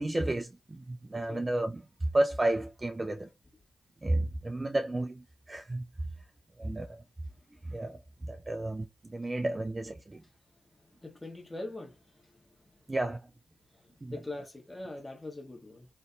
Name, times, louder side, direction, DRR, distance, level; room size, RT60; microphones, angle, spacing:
voice 1, 0.0-3.3 4.0-5.9 6.6-7.0 7.6-10.2 12.9-13.3 14.0-14.2, right 1 dB, 25° right, 0.3 m, -32 dB
voice 2, 1.1-1.4 11.0-12.0 14.1-15.9, left 2 dB, 15° left, 1.1 m, -42 dB
2.6 x 2.5 x 2.2 m
hypercardioid pair, 45°, 0 cm